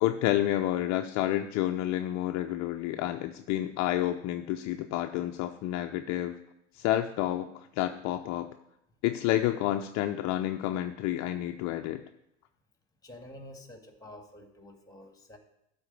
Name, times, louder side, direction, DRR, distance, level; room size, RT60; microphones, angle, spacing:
voice 1, 0.0-6.4 6.7-8.5 9.0-12.0, left 13 dB, 45° left, 6 dB, 0.7 m, -29 dB
voice 2, 13.0-15.4, left 1 dB, 10° left, 5 dB, 2.0 m, -49 dB
12.5 x 4.3 x 8.3 m, 0.85 s
hypercardioid pair, 75°, 37 cm